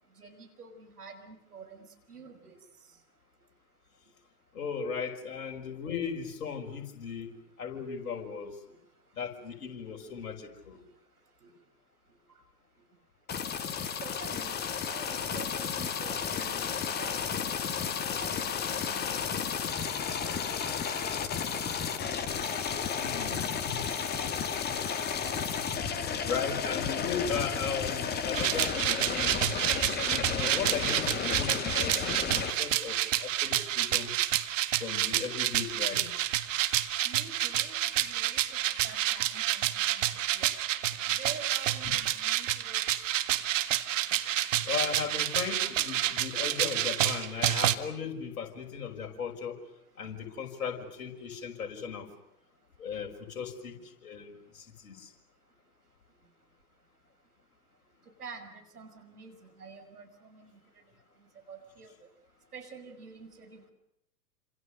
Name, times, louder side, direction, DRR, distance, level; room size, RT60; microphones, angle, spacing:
voice 1, 0.2-2.6 8.0-8.1 10.7-10.8 11.4-11.5 12.3-12.4 14.0-14.6 14.9-17.2 17.4-20.0 37.0-38.4 38.8-40.5 41.2-42.8 58.2-60.6 61.5-61.9 62.5-63.7, right 5 dB, 75° right, 7 dB, 6.2 m, -48 dB
voice 2, 4.5-8.6 9.1-10.8 23.0-23.8 24.5-24.6 26.3-29.4 29.9-34.1 34.8-36.1 41.8-41.9 44.6-49.6 50.0-52.1 52.8-55.1, left 6 dB, 65° left, 2 dB, 6.1 m, -37 dB
sound 1, 13.3-32.5, left 7 dB, 20° left, 2.4 m, -33 dB
sound 2, 28.3-47.8, right 13 dB, 55° right, 1.9 m, -29 dB
29.0 x 27.0 x 6.7 m, 0.79 s
figure-of-eight pair, 105°, 46 cm